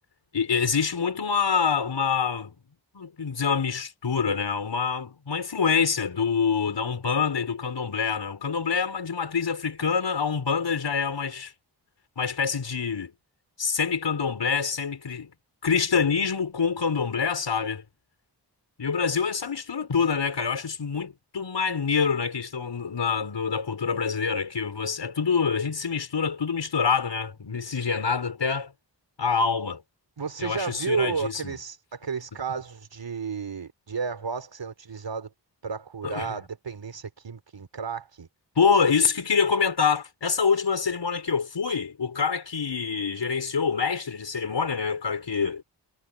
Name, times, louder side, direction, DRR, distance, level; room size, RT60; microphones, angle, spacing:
voice 1, 0.3-2.5 2.9-11.5 12.2-13.1 13.6-15.3 15.6-17.8 18.8-28.7 29.2-29.8 30.4-31.5 36.0-36.4 38.6-45.6, left 6 dB, 80° left, 5.5 m, -26 dB
voice 2, 30.2-35.3 35.6-38.3, right 5 dB, 85° right, 4.0 m, -32 dB
wide cardioid pair, 80°, 42 cm